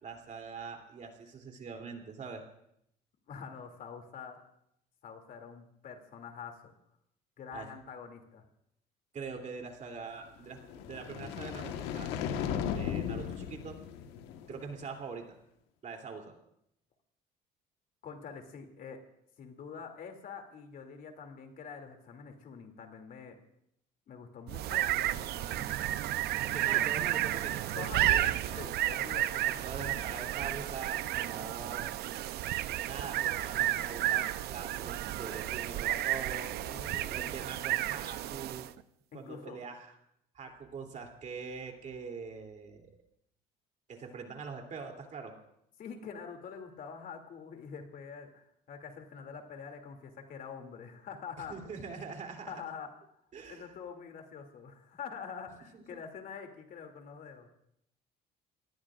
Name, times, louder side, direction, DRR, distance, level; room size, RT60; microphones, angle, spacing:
voice 1, 0.0-2.4 7.5-7.7 9.1-12.1 12.7-13.8 14.5-15.4 15.8-16.4 26.4-28.6 29.2-31.9 32.8-36.5 37.1-38.7 39.1-39.9 40.3-42.9 43.9-45.3 51.4-52.5 53.3-53.7, right 5 dB, 45° right, 3 dB, 3.0 m, -43 dB
voice 2, 3.3-4.4 5.0-6.7 7.4-8.5 18.0-19.0 19.4-23.4 24.1-26.0 26.6-26.9 27.8-28.2 28.6-29.4 36.6-37.3 39.1-39.6 45.8-51.6 52.5-52.9 53.5-57.5, left 6 dB, 55° left, 4 dB, 2.7 m, -46 dB
sound 1, 10.5-14.8, left 8 dB, 90° left, 1.4 m, -36 dB
sound 2, 24.5-38.8, right 13 dB, 70° right, 0.6 m, -32 dB
29.0 x 19.0 x 2.5 m, 0.75 s
cardioid pair, 95°, 17 cm